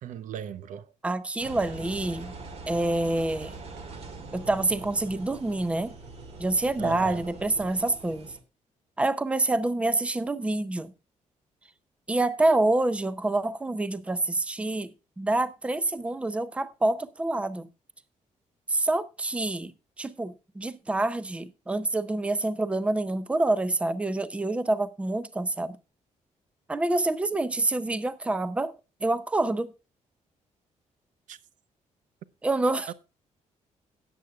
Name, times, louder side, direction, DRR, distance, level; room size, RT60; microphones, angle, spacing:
voice 1, 0.0-0.9 6.8-7.2 31.3-31.4 32.9-33.0, right 10 dB, 85° right, 0.8 m, -37 dB
voice 2, 1.0-2.3 2.7-3.6 4.3-5.9 6.4-8.3 9.0-10.9 12.1-14.9 15.2-17.7 18.7-19.7 20.0-25.8 26.7-28.7 29.0-29.7 32.4-32.9, right 2 dB, 10° right, 0.6 m, -27 dB
Engine, 1.4-8.4, right 3 dB, 55° right, 1.9 m, -43 dB
17.5 x 8.3 x 2.3 m
cardioid pair, 155°, 13 cm